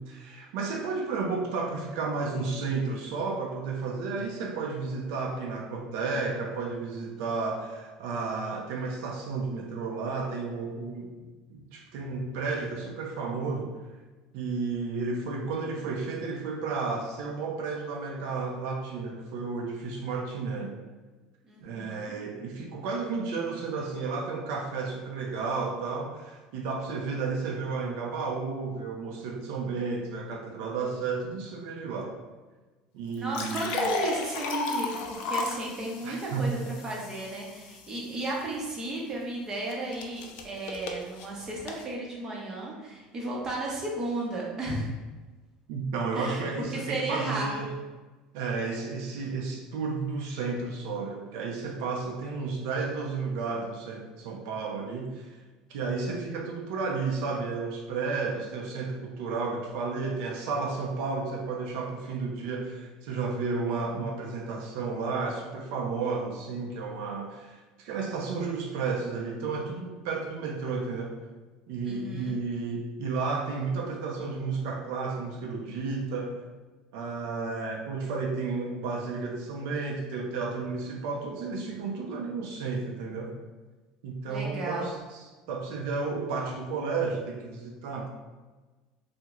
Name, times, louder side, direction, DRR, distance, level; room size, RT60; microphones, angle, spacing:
voice 1, 0.0-11.2 11.5-13.7 14.3-20.8 21.6-32.2 32.9-33.9 36.0-36.7 45.7-47.7 48.3-55.4 55.7-71.2 71.7-76.4 76.9-83.4 84.0-88.1, right 4 dB, 75° right, 0 dB, 0.5 m, -32 dB
voice 2, 21.5-22.1 33.2-44.9 46.1-46.4 46.7-47.5 71.8-72.4 84.3-84.9, right 2 dB, 25° right, -3 dB, 0.7 m, -34 dB
sound 1, 33.1-38.2 39.7-41.8, left 4 dB, 60° left, 0.4 m, -34 dB
2.9 x 2.1 x 3.5 m, 1.3 s
cardioid pair, 160°, 2 cm